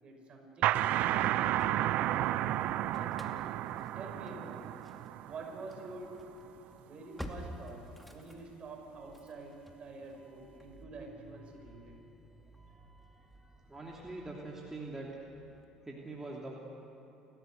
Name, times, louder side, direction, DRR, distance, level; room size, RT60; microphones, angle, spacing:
voice 1, 0.0-3.4 3.9-4.8 5.3-6.3 6.8-11.9 12.7-12.8 13.1-13.5, right 3 dB, 45° right, 2 dB, 5.6 m, -48 dB
sound 1, 0.6-6.0, right 13 dB, 65° right, 0.5 m, -32 dB
Engine starting / Slam, 0.9-2.3 2.6-15.6, equal, ahead, 2.4 m, -52 dB
voice 2, 13.7-15.1 15.8-16.7, right 2 dB, 15° right, -3 dB, 2.9 m, -43 dB
29.0 x 14.0 x 6.7 m, 2.9 s
hypercardioid pair, 65°, 3 cm